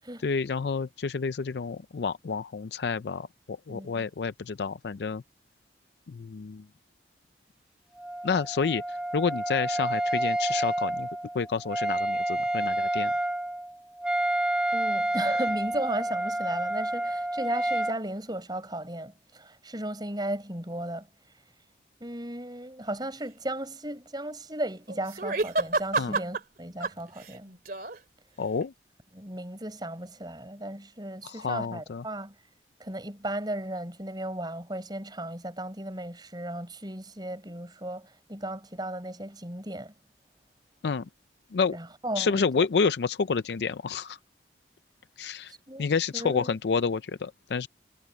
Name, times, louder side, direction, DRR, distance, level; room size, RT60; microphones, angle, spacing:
voice 1, 0.2-5.2 6.1-6.6 8.2-11.1 11.3-13.1 26.0-26.1 28.4-28.7 31.2-32.0 40.8-41.0 41.5-41.8 42.2-44.2 45.2-45.5 45.8-47.7, left 5 dB, 70° left, 0.5 m, -29 dB
voice 2, 3.7-4.0 14.7-21.1 22.0-27.5 29.1-32.4 32.8-39.9 41.7-42.7 45.7-46.5, right 1 dB, 25° right, 7.5 m, -35 dB
Wind instrument woodwind instrument, 8.0-18.0, right 1 dB, 5° right, 0.4 m, -29 dB
sound 1, 24.9-26.4 26.8-28.0 28.6-28.7, right 3 dB, 55° right, 2.6 m, -29 dB
head